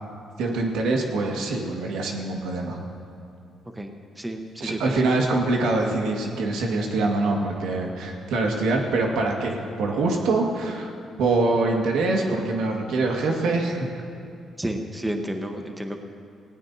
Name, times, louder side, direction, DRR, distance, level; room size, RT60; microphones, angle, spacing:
voice 1, 0.4-2.8 4.6-10.9 11.2-13.9, right 2 dB, 85° right, 0 dB, 1.9 m, -24 dB
voice 2, 4.2-5.0 14.6-16.0, right 1 dB, 10° right, 4 dB, 1.1 m, -31 dB
19.0 x 17.0 x 2.8 m, 2.7 s
cardioid pair, 90°, 0 cm